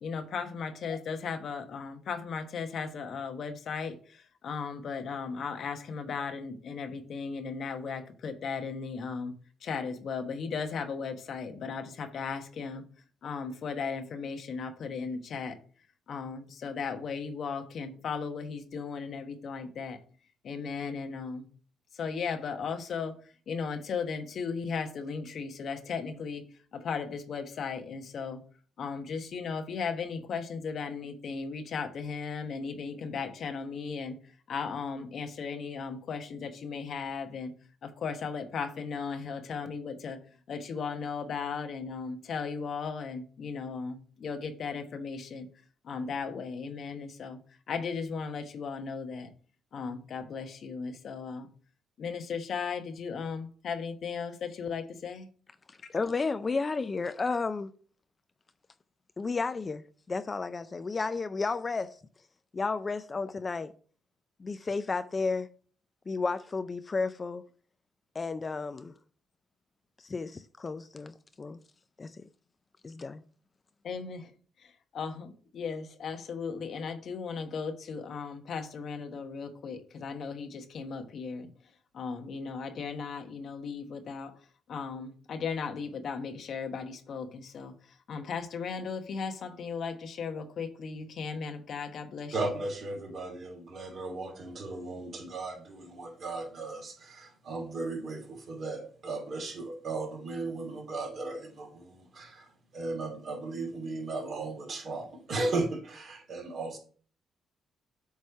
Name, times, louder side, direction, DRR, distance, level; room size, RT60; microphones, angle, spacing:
voice 1, 0.0-9.3 9.6-12.8 13.2-15.6 16.1-20.0 20.4-21.5 21.9-23.1 23.5-26.4 26.7-28.4 28.8-34.2 34.5-37.5 37.8-40.2 40.5-45.5 45.8-47.4 47.7-49.3 49.7-51.5 52.0-55.3 73.8-74.3 74.6-81.5 81.9-84.3 84.7-87.7 88.1-92.3, left 5 dB, 60° left, 1.0 m, -36 dB
voice 2, 55.7-57.7 59.2-62.0 62.5-63.7 64.4-65.5 66.1-67.4 68.1-69.0 70.0-71.6 72.0-72.2 72.8-73.2, left 4 dB, 30° left, 0.4 m, -32 dB
voice 3, 92.3-106.8, right 3 dB, 50° right, 2.8 m, -36 dB
8.2 x 3.2 x 5.5 m
cardioid pair, 90°, 0 cm